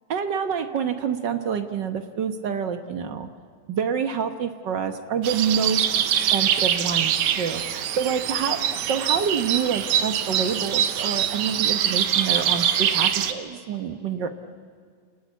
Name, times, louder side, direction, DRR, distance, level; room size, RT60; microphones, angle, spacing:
voice 1, 0.1-3.3 3.7-5.9 6.3-14.3, right 7 dB, 55° right, 8 dB, 1.2 m, -27 dB
sound 1, 5.2-13.3, right 10 dB, 75° right, 2.4 m, -24 dB
29.0 x 19.5 x 8.4 m, 2.1 s
omnidirectional pair, 3.4 m